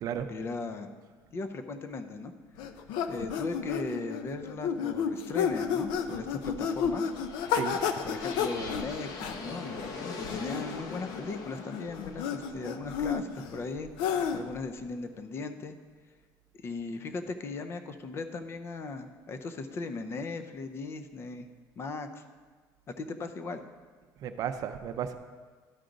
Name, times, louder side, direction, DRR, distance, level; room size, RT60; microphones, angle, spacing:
voice 1, 0.3-0.9 1.3-2.3 3.1-7.1 8.0-13.9 14.3-15.8 16.6-21.5 21.8-22.2 22.9-23.6, left 3 dB, 30° left, 9 dB, 0.5 m, -38 dB
sound 1, 2.6-14.6, left 7 dB, 85° left, 0.6 m, -32 dB
sound 2, 6.6-14.5, left 4 dB, 50° left, 0.9 m, -43 dB
voice 2, 24.2-25.1, right 8 dB, 50° right, 9 dB, 0.5 m, -33 dB
12.5 x 4.9 x 3.9 m, 1.5 s
cardioid pair, 155°, 8 cm